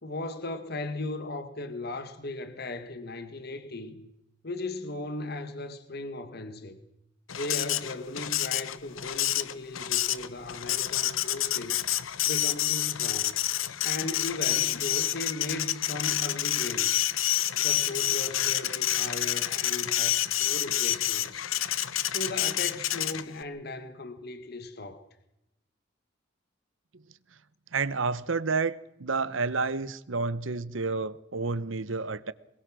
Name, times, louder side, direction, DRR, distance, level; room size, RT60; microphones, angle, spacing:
voice 1, 0.0-4.1 4.4-6.8 7.3-11.9 12.3-13.3 13.8-17.1 17.6-21.4 22.0-25.0, left 2 dB, 50° left, 1.6 m, -37 dB
Printer, 7.3-23.4, left 13 dB, 90° left, 0.9 m, -28 dB
voice 2, 27.7-32.3, right 4 dB, 75° right, 1.0 m, -30 dB
23.0 x 22.0 x 6.3 m
head